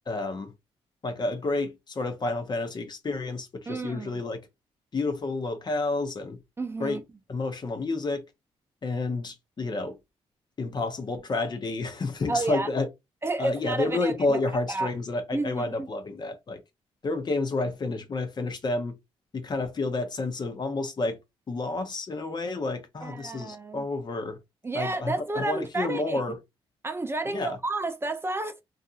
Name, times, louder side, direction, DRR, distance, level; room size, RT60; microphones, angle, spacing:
voice 1, 0.1-0.5 1.0-4.4 4.9-6.4 6.8-7.0 7.3-8.2 8.8-10.0 10.6-12.9 13.4-16.6 17.0-19.0 19.3-21.2 21.5-24.4 24.7-26.4 27.3-27.6, left 3 dB, 40° left, 0.7 m, -30 dB
voice 2, 3.7-4.2 6.6-7.0 12.3-12.7 13.2-14.4 14.7-14.9 15.3-15.9 23.0-23.9 24.6-26.2 26.8-28.6, right 2 dB, 20° right, 0.5 m, -31 dB
2.6 x 2.4 x 2.4 m
cardioid pair, 65°, 11 cm